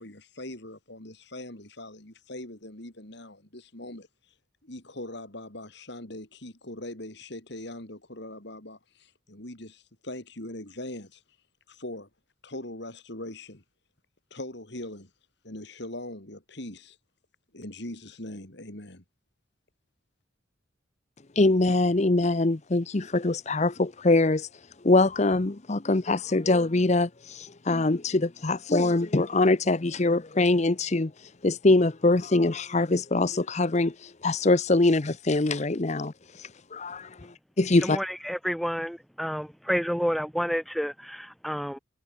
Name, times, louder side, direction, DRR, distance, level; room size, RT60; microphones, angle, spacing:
voice 1, 0.0-4.1 4.6-11.2 11.7-12.1 12.4-13.6 14.3-15.1 15.4-17.0 17.5-19.0, left 1 dB, 55° left, 3.6 m, -41 dB
voice 2, 21.4-24.5 24.8-31.1 31.4-38.0, left 2 dB, 35° left, 0.7 m, -23 dB
voice 3, 37.8-41.8, equal, ahead, 2.3 m, -30 dB
head